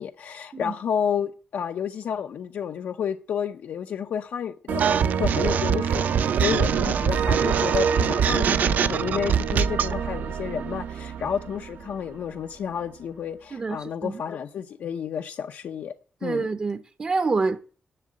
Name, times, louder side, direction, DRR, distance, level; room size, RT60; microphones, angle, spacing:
voice 1, 0.0-15.9 16.2-16.5, left 8 dB, 75° left, 0.7 m, -31 dB
sound 1, 4.7-12.3, right 7 dB, 85° right, 1.3 m, -28 dB
sound 2, 4.8-9.9, right 7 dB, 70° right, 0.7 m, -24 dB
voice 2, 13.5-14.2 16.2-17.6, right 4 dB, 30° right, 0.7 m, -27 dB
11.0 x 7.3 x 8.6 m
cardioid pair, 120°, 3 cm